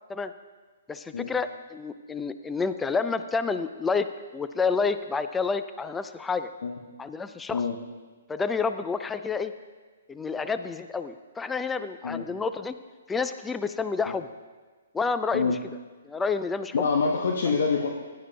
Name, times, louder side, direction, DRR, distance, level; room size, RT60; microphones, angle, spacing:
voice 1, 0.9-4.1 4.3-6.5 7.0-7.6 8.3-9.5 10.1-12.7 13.1-14.3 14.9-15.5 16.0-16.7, left 5 dB, 10° left, 11 dB, 0.3 m, -29 dB
voice 2, 16.7-17.9, left 5 dB, 60° left, 1 dB, 0.8 m, -25 dB
15.5 x 10.5 x 2.2 m, 1.4 s
figure-of-eight pair, 130°, 0 cm